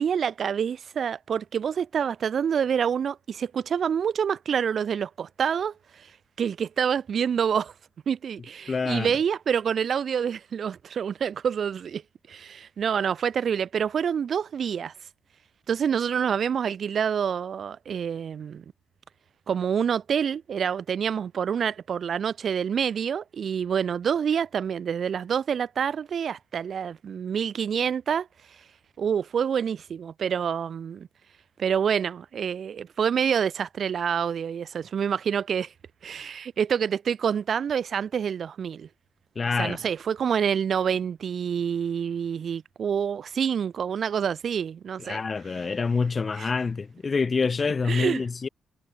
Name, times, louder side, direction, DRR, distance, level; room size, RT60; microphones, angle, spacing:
voice 1, 0.0-6.1 6.4-7.7 8.1-12.0 12.3-14.9 15.7-18.6 19.5-28.3 29.0-31.1 31.6-35.7 36.0-38.9 39.6-45.2 46.4-46.5 47.9-48.2, right 7 dB, 50° right, 1.3 m, -27 dB
voice 2, 8.7-9.1 39.4-39.8 45.0-48.5, left 4 dB, 30° left, 0.7 m, -26 dB
cardioid pair, 110°, 0 cm